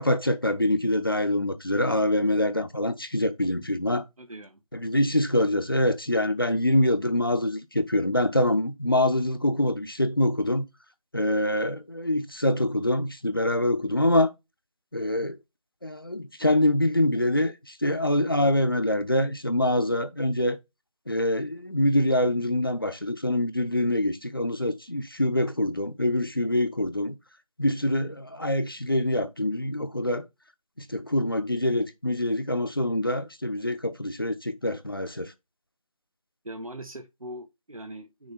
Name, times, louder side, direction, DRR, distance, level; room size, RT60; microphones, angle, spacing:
voice 1, 0.0-4.0 4.7-10.6 11.1-14.3 14.9-15.4 15.8-20.6 21.1-27.2 27.6-30.3 30.8-35.3, left 1 dB, 40° left, 0.7 m, -25 dB
voice 2, 4.2-4.6 36.4-38.3, right 1 dB, 70° right, 1.3 m, -41 dB
6.3 x 3.2 x 5.8 m
figure-of-eight pair, 175°, 18 cm